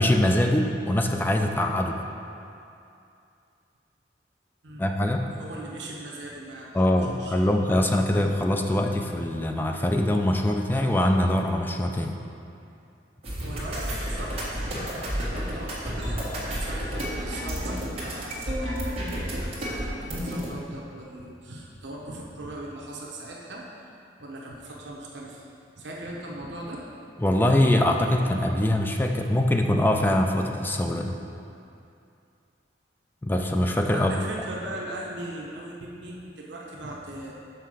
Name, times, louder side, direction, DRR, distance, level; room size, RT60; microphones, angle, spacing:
voice 1, 0.0-2.0 4.8-5.3 6.7-12.1 27.2-31.2 33.2-34.1, left 1 dB, 10° left, 3 dB, 0.3 m, -23 dB
voice 2, 5.3-7.5 13.4-23.6 24.2-25.4 25.8-26.8 33.9-37.3, right 1 dB, 75° right, -3 dB, 0.8 m, -39 dB
sound 1, 13.2-20.5, equal, 35° right, 1.5 m, -31 dB
5.7 x 4.6 x 6.3 m, 2.6 s
head